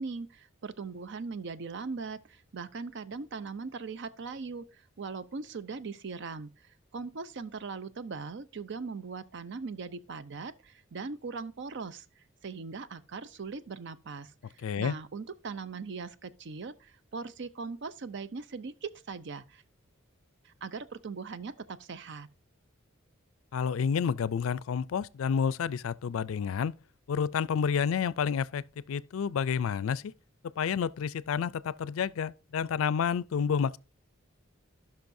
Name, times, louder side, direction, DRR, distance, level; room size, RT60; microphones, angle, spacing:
voice 1, 0.0-19.6 20.4-22.3, right 4 dB, 60° right, 0.5 m, -40 dB
voice 2, 14.6-15.0 23.5-26.7 27.1-30.1 30.6-33.8, left 7 dB, 85° left, 0.4 m, -29 dB
16.5 x 5.8 x 2.6 m
head